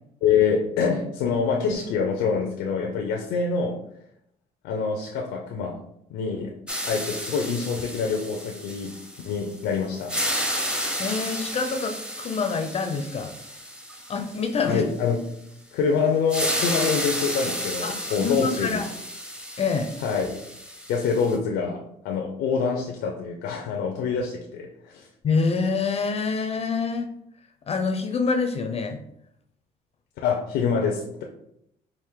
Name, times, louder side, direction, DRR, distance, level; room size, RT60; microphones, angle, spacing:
voice 1, 0.2-3.8 4.6-5.7 6.1-6.5 6.8-8.9 9.2-10.1 10.4-10.8 14.6-15.2 15.7-18.9 20.0-20.4 20.9-25.1 30.2-31.2, left 5 dB, 90° left, 1 dB, 0.6 m, -26 dB
sound 1, 6.7-9.6 9.9-14.8 16.3-21.4, equal, 5° right, 0.7 m, -32 dB
voice 2, 11.0-13.3 14.1-14.8 17.8-18.9 19.6-19.9 25.2-27.1 27.7-29.0, left 4 dB, 35° left, 6 dB, 0.5 m, -26 dB
4.9 x 2.5 x 3.6 m, 0.76 s
cardioid pair, 110°, 17 cm